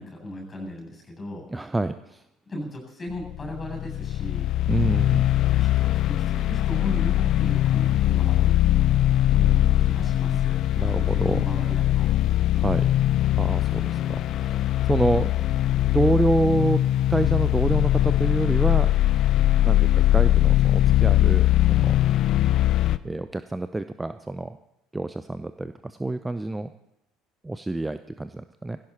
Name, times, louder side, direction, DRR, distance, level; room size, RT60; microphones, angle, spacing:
voice 1, 0.0-1.5 2.5-4.5 5.5-8.7 9.8-10.6 10.9-12.1, left 1 dB, 25° left, 3 dB, 7.9 m, -36 dB
voice 2, 1.5-2.2 4.7-5.4 9.3-10.5 10.8-11.4 12.5-12.9 13.3-15.4 15.7-16.8 17.1-18.9 19.6-22.0 23.0-24.6 24.9-26.7 27.4-28.8, right 2 dB, 10° right, 12 dB, 0.6 m, -27 dB
sound 1, 3.1-23.0, left 14 dB, 45° left, 0.6 m, -21 dB
18.5 x 16.5 x 4.4 m, 0.84 s
figure-of-eight pair, 60°, 0 cm